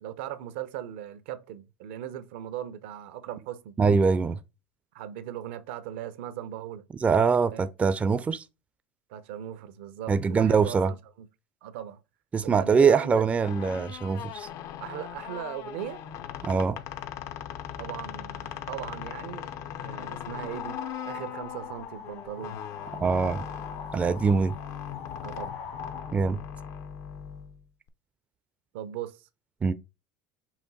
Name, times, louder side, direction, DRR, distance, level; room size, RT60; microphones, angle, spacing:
voice 1, 0.0-3.8 4.9-6.8 7.5-7.7 9.1-11.3 11.6-12.0 12.4-13.3 14.8-16.0 17.8-19.5 19.8-22.6 25.2-25.6 28.7-29.3, right 11 dB, 80° right, 0.6 m, -38 dB
voice 2, 3.8-4.4 7.0-8.4 10.1-10.9 12.3-14.5 16.4-16.8 23.0-23.5 23.9-24.6 26.1-26.4 29.6-29.7, right 5 dB, 20° right, 0.4 m, -23 dB
sound 1, 13.4-27.9, left 9 dB, 55° left, 0.5 m, -40 dB
sound 2, 20.2-26.1, left 6 dB, 70° left, 1.9 m, -41 dB
5.8 x 2.2 x 4.0 m
supercardioid pair, 100°, 6 cm